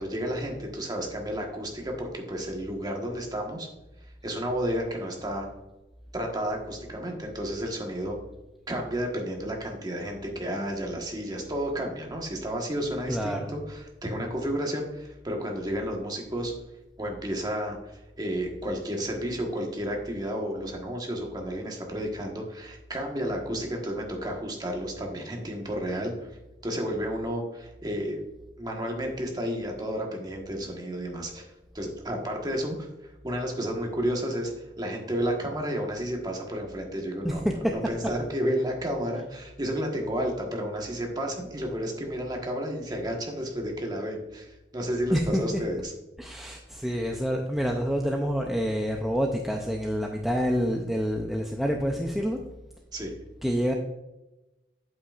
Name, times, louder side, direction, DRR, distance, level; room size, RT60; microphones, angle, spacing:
voice 1, 0.0-3.7 4.2-5.5 6.1-8.2 8.7-16.5 17.0-26.1 26.6-28.2 28.6-45.9 52.9-53.1, equal, 25° right, 0 dB, 1.3 m, -32 dB
voice 2, 13.1-13.5 37.2-37.4 45.1-45.4 46.2-52.4 53.4-53.7, equal, ahead, 1 dB, 0.5 m, -27 dB
8.4 x 7.7 x 2.5 m, 1.0 s
head